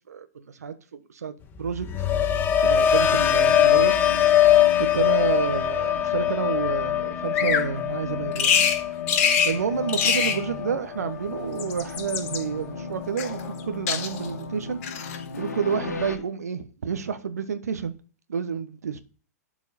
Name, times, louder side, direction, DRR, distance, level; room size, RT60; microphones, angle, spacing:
voice 1, 0.1-1.9 2.6-3.9 4.8-8.6 9.4-14.8 15.4-17.9 18.3-19.0, right 6 dB, 70° right, 1.1 m, -29 dB
sound 1, 1.6-11.6 12.0-12.4, left 10 dB, 20° left, 0.9 m, -23 dB
sound 2, 3.1-16.2, left 5 dB, 75° left, 1.6 m, -38 dB
Bird vocalization bird call bird song, 7.3-7.7 8.4-8.8 9.1-9.6 9.9-10.4 11.4-12.4 13.2-13.6 13.9-14.3 14.8-15.2, left 7 dB, 45° left, 3.6 m, -24 dB
12.0 x 4.7 x 4.2 m
figure-of-eight pair, 110°, 9 cm